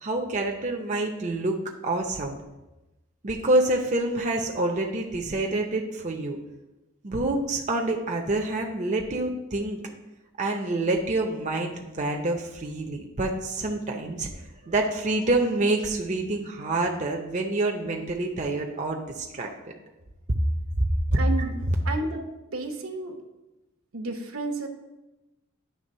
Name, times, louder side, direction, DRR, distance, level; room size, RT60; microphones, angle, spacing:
voice 1, 0.0-1.6 1.8-2.4 3.2-6.4 7.0-9.9 10.4-19.7 20.3-20.4 21.1-21.2, right 2 dB, 35° right, 1 dB, 0.6 m, -27 dB
voice 2, 21.1-21.6 21.8-23.1 23.9-24.7, right 2 dB, 80° right, 4 dB, 1.0 m, -32 dB
9.5 x 3.4 x 5.5 m, 1.0 s
head